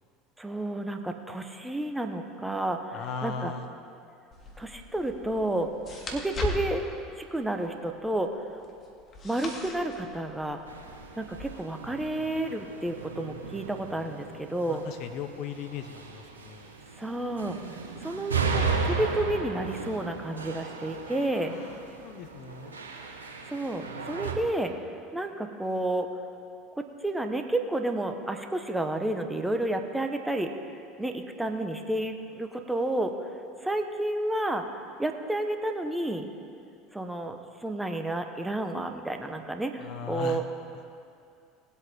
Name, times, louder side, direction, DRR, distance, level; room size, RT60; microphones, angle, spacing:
voice 1, 0.4-3.5 4.6-5.7 6.1-6.9 7.2-8.3 9.2-10.6 11.2-14.8 17.0-17.6 18.0-21.6 23.5-24.7 25.1-26.1 26.8-30.5 31.0-33.1 33.6-34.6 35.0-36.3 36.9-40.4, right 1 dB, 5° right, 5 dB, 1.1 m, -31 dB
voice 2, 2.9-3.7 14.7-16.7 21.5-22.8 39.8-40.4, left 6 dB, 55° left, 8 dB, 0.8 m, -38 dB
sound 1, 4.3-11.4, left 2 dB, 35° left, 2.0 m, -40 dB
sound 2, 10.7-24.3, right 5 dB, 90° right, 1.2 m, -35 dB
19.5 x 8.2 x 3.7 m, 2.5 s
hypercardioid pair, 75°, 0 cm